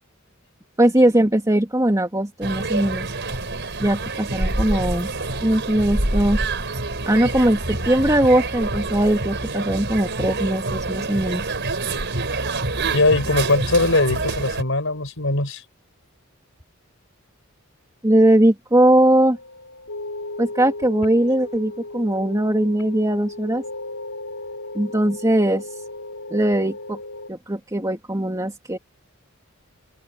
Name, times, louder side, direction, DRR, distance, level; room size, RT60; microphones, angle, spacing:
voice 1, 0.8-3.1 3.8-5.1 5.4-6.4 7.1-11.6 18.0-19.4 20.4-23.6 24.7-25.8 26.3-27.0 27.3-28.8, right 1 dB, 15° right, 2.8 m, -20 dB
sound 1, 2.4-14.6, right 2 dB, 55° right, 5.1 m, -26 dB
voice 2, 12.9-15.6, left 2 dB, 65° left, 6.0 m, -20 dB
sound 2, 19.3-27.3, left 2 dB, 80° left, 4.6 m, -35 dB
open air
head